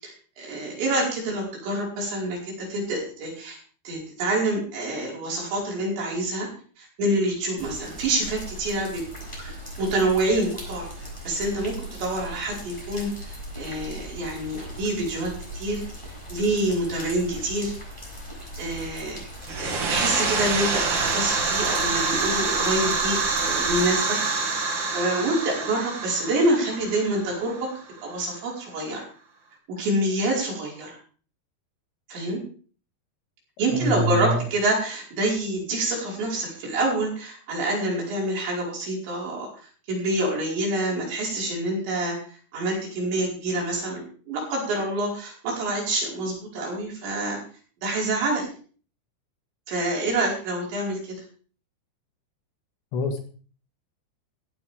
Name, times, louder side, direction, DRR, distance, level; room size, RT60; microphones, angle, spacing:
voice 1, 0.0-3.6 3.9-6.5 6.8-10.9 11.3-11.7 12.0-15.8 16.3-17.7 18.6-19.2 19.6-24.2 24.9-27.7 28.0-29.1 29.8-31.0 32.1-32.4 33.6-39.5 39.9-42.2 42.5-47.4 47.8-48.5 49.7-51.2, right 1 dB, 80° right, -3 dB, 7.4 m, -27 dB
sound 1, 7.6-23.9, right 1 dB, 5° left, 6.1 m, -39 dB
sound 2, 19.4-28.0, right 4 dB, 45° right, 1.6 m, -26 dB
voice 2, 33.7-34.5 52.9-53.2, equal, 75° left, 4 dB, 4.3 m, -25 dB
16.0 x 14.5 x 3.6 m, 0.41 s
omnidirectional pair, 5.1 m